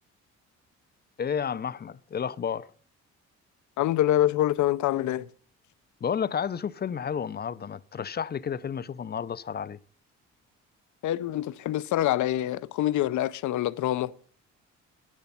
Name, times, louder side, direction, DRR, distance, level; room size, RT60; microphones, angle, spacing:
voice 1, 1.2-2.7 6.0-9.8, left 7 dB, 35° left, 0.5 m, -31 dB
voice 2, 3.8-5.3 11.0-14.1, left 13 dB, 75° left, 0.6 m, -25 dB
11.0 x 10.5 x 5.6 m
cardioid pair, 90°, 30 cm